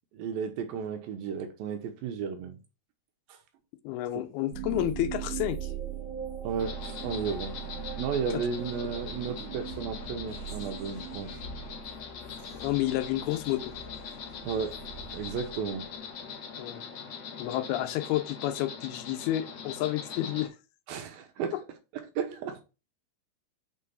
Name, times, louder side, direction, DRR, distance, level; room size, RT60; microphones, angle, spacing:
voice 1, 0.1-2.6 3.3-3.4 6.4-6.8 7.0-7.7 8.0-11.4 14.4-14.8 15.1-15.9 20.9-21.6 21.9-22.6, right 6 dB, 75° right, 2.5 m, -33 dB
voice 2, 3.8-5.7 8.3-8.4 12.5-13.7 16.6-16.8 17.4-20.5 21.5-21.6, left 14 dB, 90° left, 2.6 m, -30 dB
sound 1, 4.5-16.1, right 8 dB, 40° right, 3.7 m, -40 dB
Insect, 6.6-20.5, left 6 dB, 55° left, 2.7 m, -42 dB
6.5 x 4.6 x 5.6 m
omnidirectional pair, 4.5 m